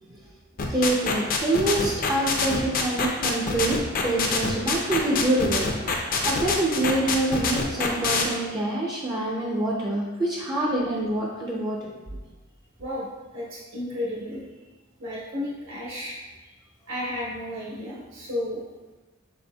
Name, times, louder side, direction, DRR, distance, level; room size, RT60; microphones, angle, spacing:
sound 1, 0.6-8.2, left 5 dB, 45° left, 0.4 m, -25 dB
voice 1, 0.7-3.8 4.0-11.9, right 1 dB, 20° right, -3 dB, 0.4 m, -26 dB
voice 2, 13.3-14.4 15.0-16.2 16.4-16.5 16.9-18.6, left 1 dB, 80° right, -6 dB, 1.1 m, -32 dB
4.2 x 3.6 x 2.2 m, 1.2 s
head